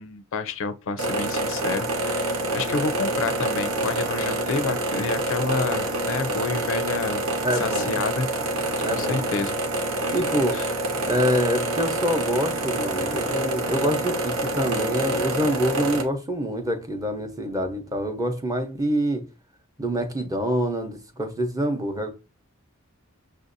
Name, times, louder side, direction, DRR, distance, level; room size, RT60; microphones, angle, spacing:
voice 1, 0.0-7.2 7.5-8.3 8.9-9.6 10.5-10.7, left 4 dB, 65° left, 0.4 m, -29 dB
sound 1, 1.0-16.0, right 1 dB, 80° right, 0.8 m, -27 dB
voice 2, 7.4-7.9 8.8-9.3 10.1-10.6 11.0-19.2 19.8-22.1, equal, 15° right, 0.7 m, -26 dB
6.5 x 2.6 x 2.6 m
head